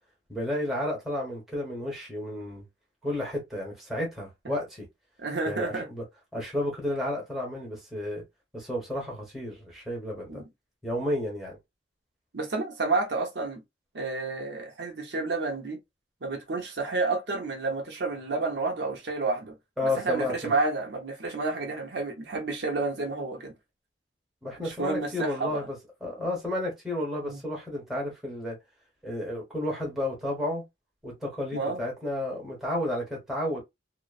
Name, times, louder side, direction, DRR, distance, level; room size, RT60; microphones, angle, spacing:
voice 1, 0.3-2.7 3.0-4.9 5.5-6.0 6.3-8.2 8.5-10.4 10.8-11.6 19.8-20.5 24.4-28.6 29.0-30.6 31.0-33.6, left 1 dB, ahead, 1.1 m, -32 dB
voice 2, 5.2-5.9 10.3-10.4 12.3-13.6 13.9-15.8 16.2-19.5 19.8-23.5 24.6-25.6 27.2-27.4 31.5-31.8, right 3 dB, 70° right, 0.8 m, -30 dB
2.9 x 2.0 x 2.4 m
head